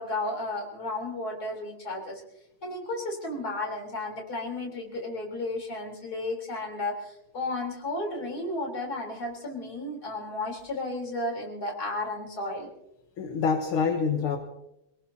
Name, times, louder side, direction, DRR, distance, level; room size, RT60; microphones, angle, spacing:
voice 1, 0.0-2.2 2.6-12.7, left 2 dB, 45° left, 0 dB, 4.4 m, -33 dB
voice 2, 13.2-14.4, left 5 dB, 80° left, 3 dB, 2.1 m, -26 dB
27.0 x 18.5 x 2.8 m, 0.85 s
omnidirectional pair, 2.3 m